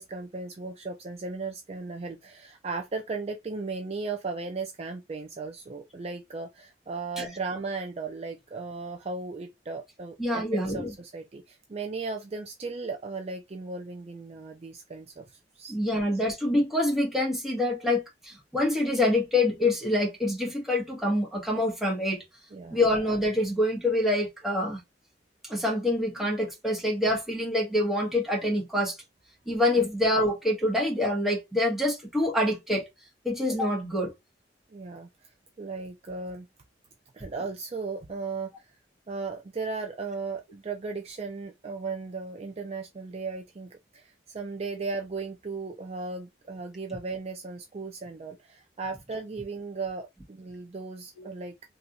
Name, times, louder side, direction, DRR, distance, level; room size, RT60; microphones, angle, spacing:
voice 1, 0.0-16.2 22.5-22.9 29.7-29.9 34.7-36.5 37.1-38.7 39.1-51.5, right 4 dB, 35° right, 0.4 m, -36 dB
voice 2, 10.2-10.9 15.7-22.2 22.7-24.8 25.4-29.0 29.5-32.9 33.2-34.1 51.2-51.3, left 1 dB, ahead, 1.3 m, -26 dB
3.2 x 2.7 x 2.7 m
head